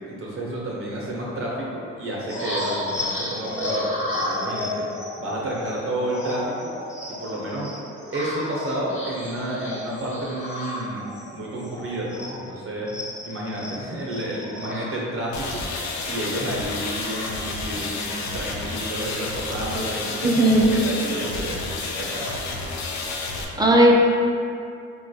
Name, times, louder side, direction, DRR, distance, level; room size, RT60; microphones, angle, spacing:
voice 1, 0.1-4.7 5.2-6.7 7.2-7.7 8.1-11.0 11.3-12.9 13.2-15.6 16.1-21.7 22.0-22.3, right 1 dB, 45° right, -5 dB, 0.7 m, -30 dB
sound 1, 2.3-12.6 12.9-17.8 18.2-18.3 18.6-19.8 20.2-20.6, left 1 dB, 25° left, 0.7 m, -33 dB
sound 2, 15.3-23.4, left 3 dB, 65° left, 0.5 m, -30 dB
voice 2, 20.2-20.7 23.6-24.0, right 1 dB, 15° right, -3 dB, 0.3 m, -15 dB
4.1 x 2.2 x 2.7 m, 2.5 s
cardioid pair, 90°, 30 cm